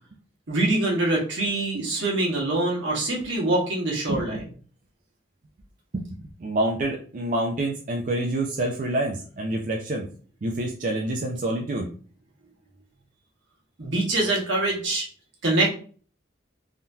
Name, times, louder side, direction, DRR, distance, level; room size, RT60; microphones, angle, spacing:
voice 1, 0.5-4.4 13.8-15.0 15.4-15.7, right 2 dB, 75° right, -3 dB, 1.3 m, -24 dB
voice 2, 4.1-4.4 5.9-10.1 10.4-11.9, right 1 dB, 45° right, 0 dB, 0.4 m, -27 dB
3.6 x 2.7 x 2.3 m, 0.41 s
head